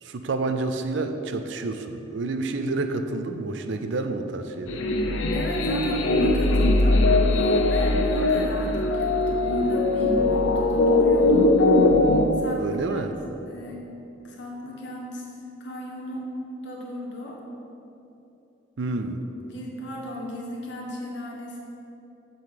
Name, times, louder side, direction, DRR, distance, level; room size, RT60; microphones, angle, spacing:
voice 1, 0.0-4.8 12.6-13.1 18.8-19.2, right 3 dB, 60° right, 7 dB, 0.5 m, -29 dB
sound 1, 4.7-12.3, left 2 dB, 70° left, 0.6 m, -20 dB
voice 2, 5.3-7.0 7.3-11.5 12.4-13.1 13.5-13.8 14.2-15.3 15.6-16.3 16.6-17.4 19.2-21.6, left 1 dB, 55° left, -2 dB, 1.4 m, -36 dB
7.7 x 3.8 x 6.6 m, 2.9 s
head